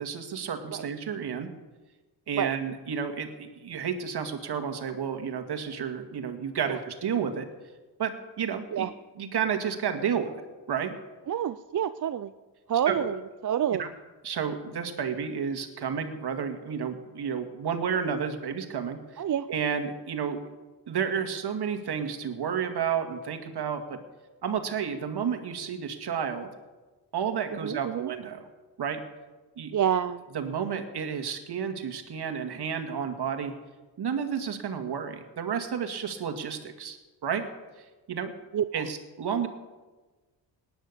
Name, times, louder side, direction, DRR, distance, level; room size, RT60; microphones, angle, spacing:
voice 1, 0.0-1.5 2.3-7.5 8.0-8.9 9.2-10.9 12.9-13.0 13.8-13.9 14.2-19.2 19.5-20.4 20.9-24.0 24.4-26.5 27.1-28.5 28.8-29.0 29.6-29.7 30.3-33.5 34.0-37.0 37.2-37.5 38.1-38.3 38.7-39.5, right 7 dB, 60° right, 6 dB, 2.1 m, -31 dB
voice 2, 11.3-12.3 12.7-13.2 13.4-13.8 19.2-19.5 27.6-28.1 29.7-30.2 38.5-38.9 39.3-39.4, right 9 dB, 45° right, 12 dB, 0.6 m, -28 dB
18.5 x 10.5 x 6.8 m, 1.2 s
cardioid pair, 75°, 44 cm